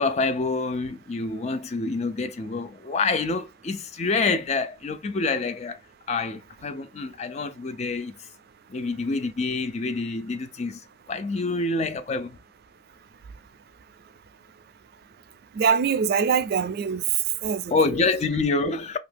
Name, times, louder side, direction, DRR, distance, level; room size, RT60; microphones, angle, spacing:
voice 1, 0.0-5.8 6.1-8.1 8.7-10.8 11.1-12.4 17.7-19.0, left 3 dB, 40° left, 0.4 m, -27 dB
voice 2, 15.6-17.0 17.4-18.0, right 6 dB, 55° right, 0.4 m, -24 dB
2.8 x 2.5 x 3.3 m
head